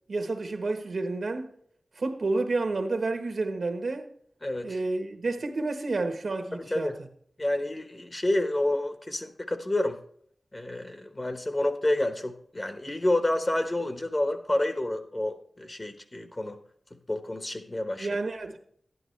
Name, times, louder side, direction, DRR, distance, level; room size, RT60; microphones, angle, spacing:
voice 1, 0.1-1.5 2.0-4.1 4.6-7.1 18.0-18.6, right 3 dB, 75° right, 1.2 m, -30 dB
voice 2, 4.4-4.8 6.5-7.0 7.4-10.0 10.5-16.6 17.1-18.1, left 1 dB, 35° left, 1.3 m, -29 dB
11.5 x 11.0 x 3.3 m
cardioid pair, 50°, 0 cm